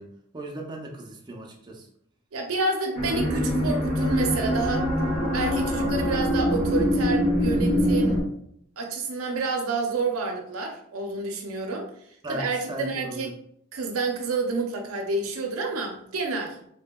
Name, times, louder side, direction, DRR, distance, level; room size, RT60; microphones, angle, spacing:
voice 1, 0.0-1.9 12.2-13.3, right 1 dB, 20° right, 0 dB, 0.4 m, -37 dB
voice 2, 2.3-4.9 5.3-8.2 8.8-11.9 12.3-13.3 13.7-16.6, right 3 dB, 80° right, 2 dB, 0.5 m, -29 dB
sound 1, 2.9-8.2, equal, 35° left, 0.9 m, -24 dB
2.7 x 2.6 x 2.2 m, 0.69 s
head